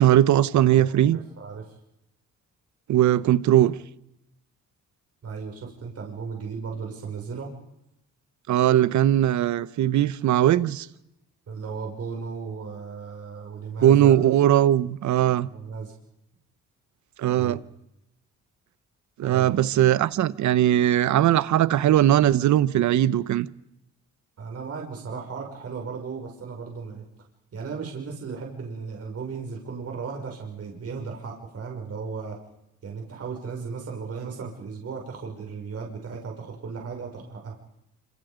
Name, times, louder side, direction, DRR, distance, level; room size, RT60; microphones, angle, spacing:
voice 1, 0.0-1.2 2.9-3.7 8.5-10.9 13.8-15.5 17.2-17.6 19.2-23.5, right 12 dB, 70° right, 1.1 m, -19 dB
voice 2, 0.7-1.7 5.2-7.5 11.5-14.2 15.4-16.0 17.4-17.6 19.2-19.5 24.4-27.0 27.5-32.4 32.8-37.6, right 5 dB, 55° right, 6.2 m, -36 dB
27.0 x 26.5 x 5.2 m
cardioid pair, 90°, 30 cm